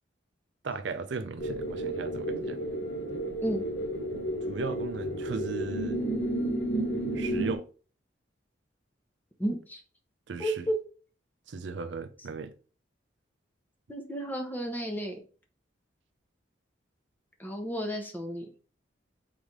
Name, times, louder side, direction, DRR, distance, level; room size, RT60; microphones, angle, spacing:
voice 1, 0.6-2.6 4.4-6.0 7.0-7.7 10.3-10.7 11.5-12.5, right 4 dB, 65° right, 0.5 m, -36 dB
sound 1, 1.4-7.6, right 1 dB, 90° left, 1.0 m, -32 dB
voice 2, 9.4-9.8 10.4-10.8 13.9-15.2 17.4-18.5, equal, 10° left, 0.8 m, -32 dB
4.1 x 3.2 x 3.6 m
head